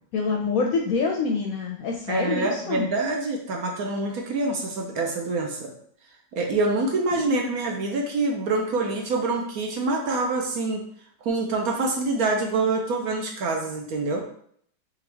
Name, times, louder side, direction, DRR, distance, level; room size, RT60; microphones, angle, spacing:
voice 1, 0.1-2.9 7.3-7.4, left 4 dB, 70° left, 0 dB, 0.9 m, -26 dB
voice 2, 2.1-5.7 6.3-10.8 11.2-14.3, right 3 dB, 65° right, 1 dB, 1.1 m, -26 dB
3.6 x 3.5 x 3.4 m, 0.63 s
omnidirectional pair, 1.9 m